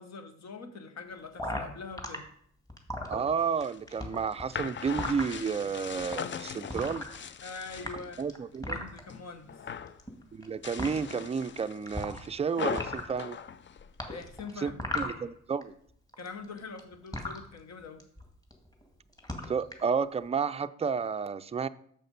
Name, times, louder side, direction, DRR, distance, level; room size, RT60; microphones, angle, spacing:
voice 1, 0.0-2.3 7.4-8.3 8.6-9.6 14.0-14.8 16.2-18.0, left 4 dB, 60° left, 7 dB, 1.3 m, -43 dB
sound 1, 1.4-2.2 2.7-3.6 3.9-5.3 6.0-6.2 6.7-7.4 7.7-9.0 9.9-10.5 10.8-10.9 11.9-12.4 12.7-13.2 14.0-15.6 15.9-17.4 18.0-18.2 18.5-18.8 19.1-19.8, left 1 dB, 10° left, 1.9 m, -36 dB
voice 2, 3.1-7.1 8.2-8.8 10.3-13.4 14.6-15.7 19.5-21.7, right 6 dB, 20° right, 12 dB, 0.4 m, -31 dB
sound 2, 3.4-8.3 8.7-9.2 9.5-10.0 10.5-14.4, left 7 dB, 40° left, 0.5 m, -40 dB
6.9 x 5.7 x 5.3 m, 0.65 s
cardioid pair, 70°, 31 cm